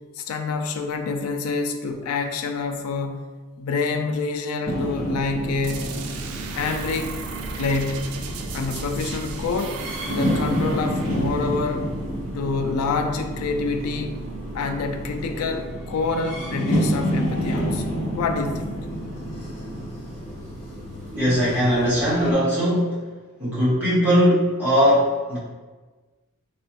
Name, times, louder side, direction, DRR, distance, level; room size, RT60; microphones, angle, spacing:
voice 1, 0.2-3.2 3.6-5.9 6.5-7.1 7.6-8.1 8.5-9.8 10.1-11.9 12.3-14.2 14.5-18.7, left 4 dB, 80° left, 6 dB, 0.3 m, -27 dB
sound 1, 4.6-22.3, equal, 35° left, 0.9 m, -29 dB
sound 2, 5.6-13.2, right 4 dB, 80° right, 0.3 m, -36 dB
voice 2, 21.1-23.0 23.4-25.4, equal, 5° right, -11 dB, 1.0 m, -20 dB
3.0 x 2.2 x 2.8 m, 1.3 s
head